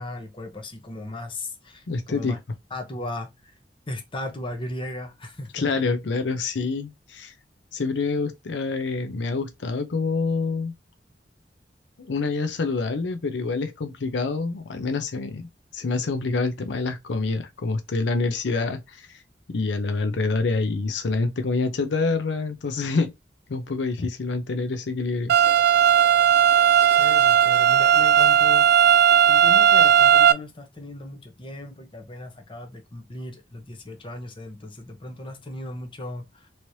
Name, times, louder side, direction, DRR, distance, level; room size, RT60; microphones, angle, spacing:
voice 1, 0.0-2.4 2.7-3.3 3.9-5.6 26.9-28.7 29.3-36.5, left 2 dB, 30° left, 0.8 m, -36 dB
voice 2, 1.9-2.4 5.5-7.3 7.7-10.7 12.0-19.2 19.5-23.1 23.5-25.3, left 3 dB, 85° left, 0.5 m, -27 dB
sound 1, 25.3-30.3, right 8 dB, 65° right, 0.4 m, -16 dB
3.1 x 3.1 x 2.6 m
head